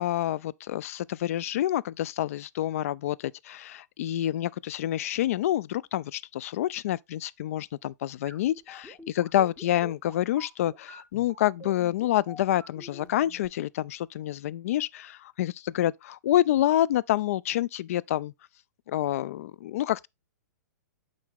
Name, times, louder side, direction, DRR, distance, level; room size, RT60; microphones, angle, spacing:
voice 1, 0.0-18.3 18.9-20.1, left 13 dB, 55° left, 0.3 m, -28 dB
sound 1, 8.3-13.5, equal, 15° left, 2.8 m, -46 dB
8.4 x 3.9 x 3.6 m
figure-of-eight pair, 115°, 9 cm